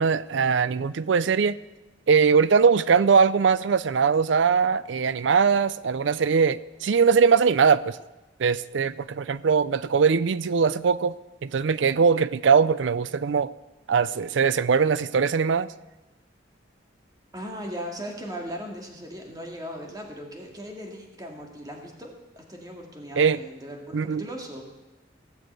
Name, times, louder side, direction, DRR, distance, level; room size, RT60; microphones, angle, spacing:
voice 1, 0.0-1.6 2.1-8.0 8.4-11.1 11.4-13.5 13.9-15.7 23.2-23.4 23.9-24.2, right 5 dB, 75° right, 17 dB, 0.5 m, -21 dB
voice 2, 17.3-24.6, equal, 20° right, 1 dB, 2.1 m, -38 dB
17.0 x 7.0 x 8.1 m, 1.1 s
head